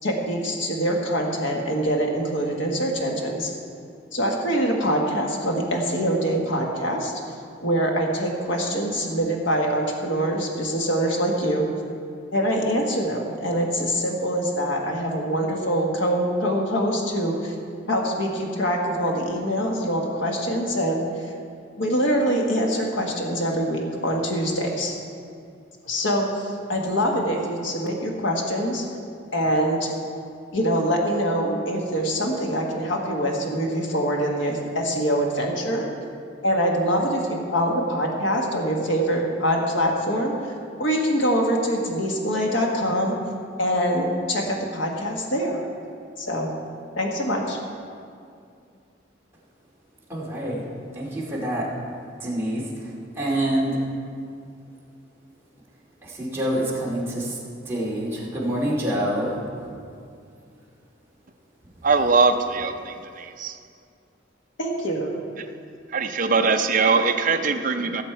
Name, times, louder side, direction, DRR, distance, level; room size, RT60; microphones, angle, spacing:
voice 1, 0.0-3.5 4.1-7.1 7.6-11.7 12.3-17.5 17.9-21.0 21.8-24.9 25.8-28.9 29.3-29.9 30.5-35.9 36.4-40.3 40.8-43.1 43.6-45.6 46.2-46.5 47.0-47.6 64.6-65.1, equal, 75° left, 1.5 m, -24 dB
voice 2, 50.1-50.6 50.9-51.7 52.2-53.8 56.0-57.4 57.7-59.3, right 1 dB, 15° right, 2.3 m, -26 dB
voice 3, 61.8-63.5 65.4-65.5 65.9-68.0, right 4 dB, 45° right, 0.6 m, -21 dB
16.5 x 7.3 x 4.5 m
head